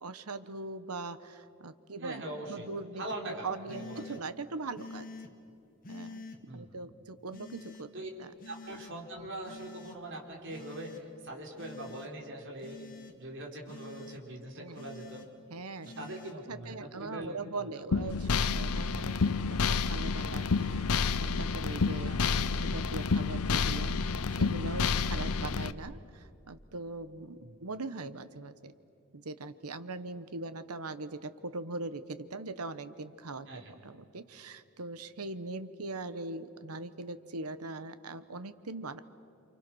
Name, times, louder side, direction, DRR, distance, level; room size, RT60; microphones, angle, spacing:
voice 1, 0.0-5.1 5.9-6.3 6.5-7.9 8.2-8.3 14.6-14.8 15.5-16.1 16.5-28.7 29.1-39.0, right 3 dB, 85° right, 12 dB, 1.1 m, -41 dB
voice 2, 2.0-2.7 3.0-4.1 6.5-6.8 7.9-8.1 8.4-15.2 15.8-17.9 22.0-22.6 27.4-27.6 33.4-33.7, right 1 dB, 55° right, 0 dB, 4.5 m, -42 dB
sound 1, 3.1-3.2 3.7-4.2 4.8-5.3 5.8-6.4 7.3-7.8 8.4-8.9 9.4-10.0 10.5-11.0 11.6-12.1 12.6-13.1 13.7-14.2 14.7-15.3 15.8-16.3, left 3 dB, 40° left, 1.8 m, -47 dB
sound 2, 17.9-25.7, left 4 dB, 80° left, 0.7 m, -29 dB
29.0 x 27.5 x 6.3 m, 2.6 s
head